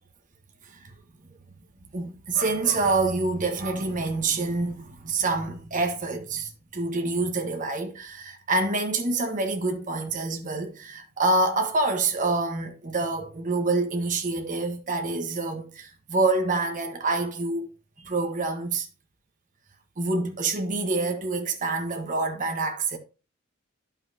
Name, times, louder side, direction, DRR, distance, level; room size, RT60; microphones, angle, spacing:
voice 1, 1.9-17.7 18.0-18.9 20.0-23.0, right 3 dB, 40° right, 1.3 m, -27 dB
11.5 x 5.6 x 2.7 m
head